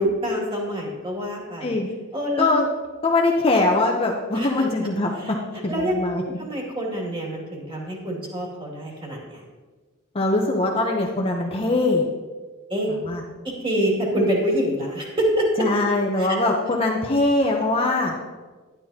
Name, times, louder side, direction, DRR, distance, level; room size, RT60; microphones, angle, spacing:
voice 1, 0.0-1.8 2.1-2.5 4.3-4.7 5.2-5.3 5.7-5.9 6.4-9.4 12.7-12.9 13.6-15.7 16.2-16.4, equal, 25° right, -3 dB, 2.4 m, -26 dB
voice 2, 3.0-5.4 5.6-6.2 10.1-12.1 13.0-13.2 15.6-18.1, left 2 dB, 25° left, 0 dB, 0.8 m, -22 dB
11.5 x 10.5 x 2.9 m, 1.3 s
head